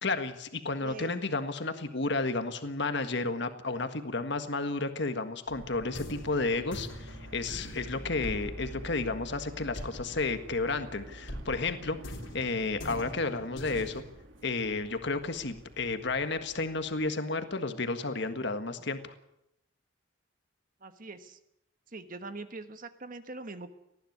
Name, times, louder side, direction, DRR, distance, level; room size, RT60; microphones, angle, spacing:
voice 1, 0.0-12.0 12.3-14.0 14.4-19.1, left 3 dB, 60° left, 9 dB, 1.6 m, -32 dB
voice 2, 0.8-1.2 20.8-21.4 21.9-23.7, right 3 dB, 45° right, 9 dB, 1.3 m, -42 dB
sound 1, 5.5-17.1, right 1 dB, 75° right, 2.8 m, -49 dB
sound 2, 5.6-10.9 11.3-14.0, equal, 80° left, 3.6 m, -43 dB
19.5 x 14.0 x 9.5 m, 0.84 s
head